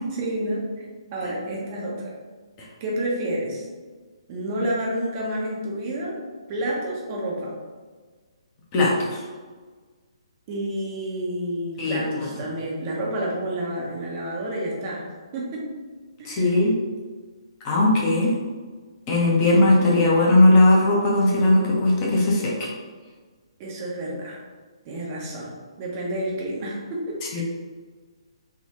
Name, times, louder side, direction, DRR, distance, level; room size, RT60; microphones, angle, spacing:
voice 1, 0.1-0.7 1.1-2.1 2.8-3.7 4.3-6.2 6.5-7.6 10.5-15.0 15.3-15.7 16.2-16.6 23.6-24.4 24.8-27.4, right 1 dB, 30° right, -3 dB, 0.6 m, -29 dB
voice 2, 8.7-9.2 11.8-12.0 16.2-16.7 17.6-18.3 19.1-22.7 27.3-27.4, left 2 dB, 25° left, -4 dB, 0.7 m, -18 dB
3.5 x 2.2 x 2.8 m, 1.4 s
figure-of-eight pair, 130°, 3 cm